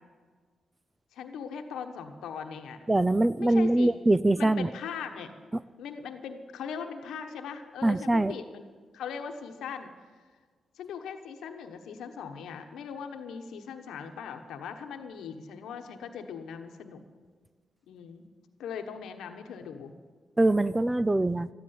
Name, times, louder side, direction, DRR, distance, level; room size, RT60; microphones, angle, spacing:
voice 1, 1.1-2.8 3.4-3.9 4.4-5.3 5.8-8.6 8.9-9.9 10.7-17.0 17.9-18.3 18.6-19.9, left 7 dB, 85° left, 6 dB, 1.2 m, -39 dB
voice 2, 2.9-4.7 7.8-8.3 20.4-21.5, right 2 dB, 20° right, 16 dB, 0.5 m, -23 dB
13.5 x 10.5 x 9.6 m, 1.5 s
cardioid pair, 60°, 0 cm